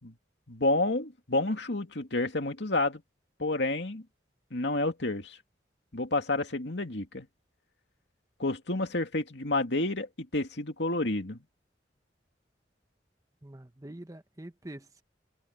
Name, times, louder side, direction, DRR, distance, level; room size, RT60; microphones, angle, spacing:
voice 1, 0.5-3.0 3.4-4.0 4.5-5.4 5.9-7.3 8.4-11.4, left 2 dB, 70° left, 2.5 m, -29 dB
voice 2, 13.4-15.0, right 1 dB, 20° right, 0.9 m, -45 dB
head